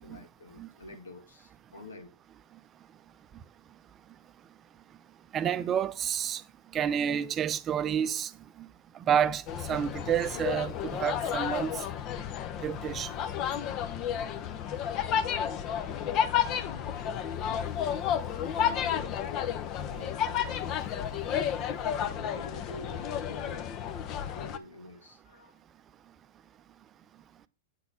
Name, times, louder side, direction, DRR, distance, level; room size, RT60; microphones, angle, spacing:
voice 1, 0.0-2.1 16.4-17.3 18.5-20.6 21.8-23.7 24.3-25.6, left 2 dB, 90° left, 1.7 m, -47 dB
voice 2, 5.3-6.4 6.7-8.3 9.1-9.4 9.7-11.7 12.6-13.1, right 9 dB, 30° right, 0.6 m, -29 dB
sound 1, 9.5-24.6, left 9 dB, 40° left, 0.8 m, -32 dB
8.3 x 4.2 x 6.9 m
hypercardioid pair, 115°, 0 cm